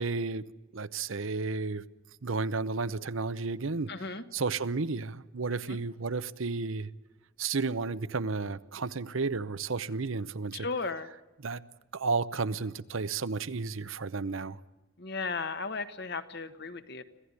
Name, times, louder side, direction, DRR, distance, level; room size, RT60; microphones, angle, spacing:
voice 1, 0.0-1.8 2.2-6.9 7.4-10.7 11.4-11.6 11.9-14.6, right 4 dB, 75° right, 0.8 m, -32 dB
voice 2, 3.9-4.2 5.7-5.8 10.5-11.1 15.0-17.0, left 4 dB, 55° left, 1.3 m, -35 dB
26.0 x 16.0 x 9.7 m
head